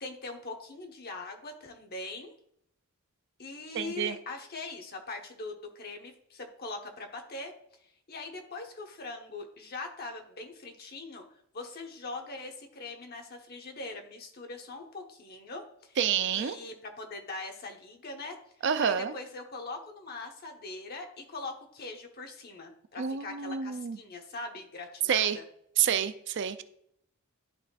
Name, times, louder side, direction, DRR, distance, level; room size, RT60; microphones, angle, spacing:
voice 1, 0.0-2.3 3.4-7.5 8.1-11.2 11.5-16.0 16.3-18.4 18.8-25.4, left 3 dB, 45° left, 3 dB, 1.1 m, -41 dB
voice 2, 3.7-4.2 16.0-16.6 18.6-19.1 23.0-24.0 25.1-25.4 25.8-26.6, right 8 dB, 55° right, 11 dB, 0.4 m, -28 dB
12.0 x 4.2 x 2.4 m, 0.72 s
head